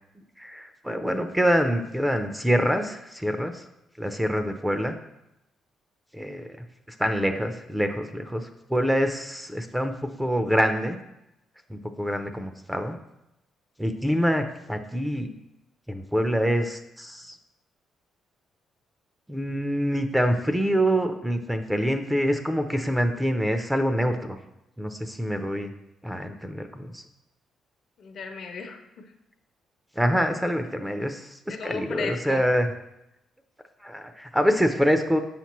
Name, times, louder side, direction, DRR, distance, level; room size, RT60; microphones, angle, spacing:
voice 1, 0.4-3.6 4.0-5.0 6.1-6.6 7.0-11.0 11.7-13.0 13.8-15.3 15.9-17.4 19.3-24.4 24.8-25.7 26.0-27.0 30.0-32.7 33.8-35.2, equal, 5° right, 7 dB, 0.6 m, -25 dB
voice 2, 28.0-29.0 31.5-32.4, left 5 dB, 65° left, 5 dB, 0.9 m, -35 dB
7.7 x 5.8 x 3.0 m, 0.88 s
cardioid pair, 90°, 0 cm